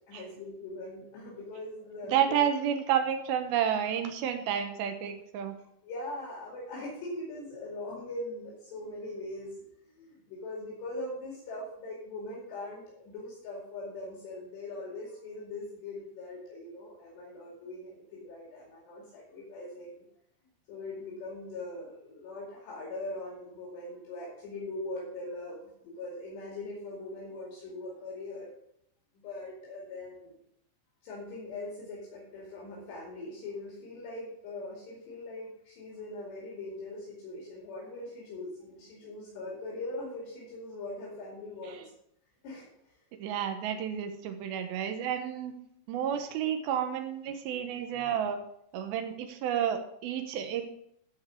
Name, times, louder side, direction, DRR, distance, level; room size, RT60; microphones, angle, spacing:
voice 1, 0.1-2.4 5.8-9.6 9.9-20.1 20.7-28.5 29.1-30.4 31.0-41.9 42.4-42.9, left 2 dB, 70° left, -4 dB, 4.5 m, -41 dB
voice 2, 2.1-5.5 41.7-41.8 43.2-45.5 45.9-48.4 48.7-50.6, right 9 dB, 70° right, 6 dB, 2.6 m, -30 dB
13.0 x 4.6 x 6.3 m, 0.73 s
omnidirectional pair, 5.1 m